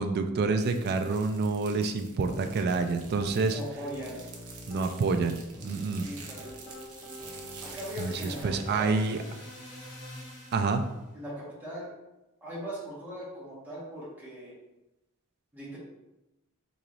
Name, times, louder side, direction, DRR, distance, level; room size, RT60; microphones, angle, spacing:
voice 1, 0.0-3.6 4.7-6.1 8.0-9.2 10.5-10.8, right 4 dB, 50° right, 7 dB, 0.3 m, -28 dB
sound 1, 0.6-8.4, right 5 dB, 85° right, 0.6 m, -48 dB
Piano, 2.3-3.3 3.8-4.9 5.5-8.8, equal, 30° left, 1.3 m, -46 dB
voice 2, 3.5-4.2 6.0-6.5 7.6-9.0 11.1-11.9 12.4-14.5 15.5-15.8, equal, 10° right, -9 dB, 1.3 m, -39 dB
sound 2, 6.3-11.1, left 1 dB, 85° left, 1.3 m, -49 dB
3.8 x 3.0 x 2.5 m, 0.98 s
head